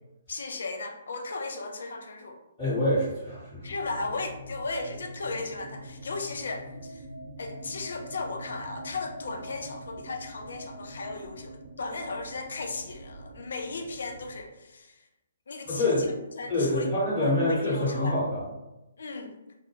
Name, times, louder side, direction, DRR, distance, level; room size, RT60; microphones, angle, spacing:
voice 1, 0.3-2.4 3.6-7.1 7.4-15.1 15.5-16.9 17.2-18.2 19.0-19.3, left 3 dB, 65° left, 3 dB, 0.4 m, -36 dB
voice 2, 2.6-3.7 15.7-16.1 16.5-18.4, left 1 dB, 25° left, -12 dB, 1.0 m, -26 dB
sound 1, 3.5-14.4, right 1 dB, 40° right, 0.5 m, -44 dB
2.2 x 2.1 x 3.0 m, 0.98 s
figure-of-eight pair, 130°, 0 cm